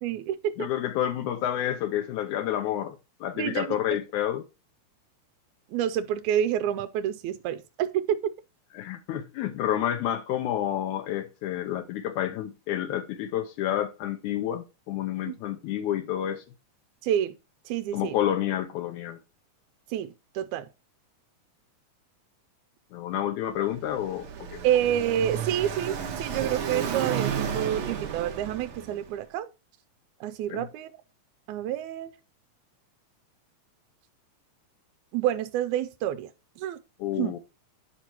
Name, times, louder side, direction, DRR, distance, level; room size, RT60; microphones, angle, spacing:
voice 1, 0.0-0.7 3.4-3.8 5.7-8.2 15.3-15.4 17.0-17.3 17.7-18.1 19.9-20.7 24.6-29.5 30.2-30.9 31.5-32.1 35.1-36.3 36.6-36.8 37.2-37.3, right 10 dB, 85° right, 2.0 m, -28 dB
voice 2, 0.6-4.4 8.7-16.4 17.9-19.2 22.9-24.6 30.5-30.6 37.0-37.4, left 11 dB, 80° left, 2.1 m, -29 dB
Car passing by, 23.5-29.1, right 8 dB, 60° right, 1.4 m, -32 dB
9.7 x 5.8 x 2.9 m
omnidirectional pair, 3.5 m